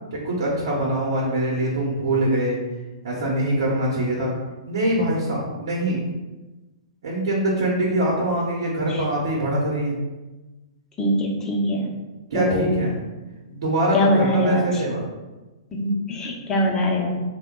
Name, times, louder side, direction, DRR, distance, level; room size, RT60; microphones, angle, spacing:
voice 1, 0.2-2.6 3.0-4.3 4.7-6.0 7.0-9.9 12.3-13.0 13.5-15.0, right 1 dB, 75° right, -5 dB, 0.9 m, -23 dB
voice 2, 11.0-11.9 12.3-12.8 13.9-14.8 15.7-17.2, equal, 20° left, -1 dB, 0.7 m, -22 dB
3.4 x 2.2 x 3.6 m, 1.1 s
hypercardioid pair, 125°, 3 cm